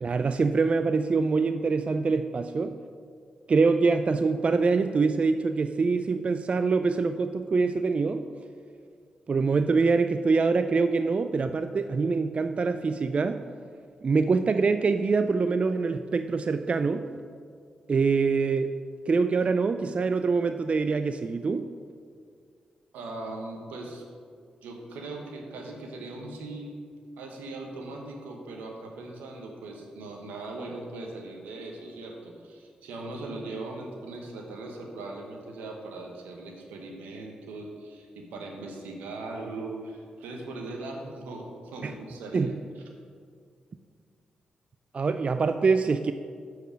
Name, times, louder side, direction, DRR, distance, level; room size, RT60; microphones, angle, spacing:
voice 1, 0.0-2.8 3.5-8.2 9.3-13.4 14.0-17.1 17.9-18.7 19.1-21.7 41.8-41.9 42.3-42.5 44.9-46.1, right 4 dB, 45° right, 9 dB, 0.3 m, -24 dB
voice 2, 22.9-24.0 24.6-26.7 27.2-42.8, right 2 dB, 90° right, 2 dB, 1.0 m, -39 dB
6.9 x 4.7 x 6.1 m, 2.2 s
supercardioid pair, 45°, 3 cm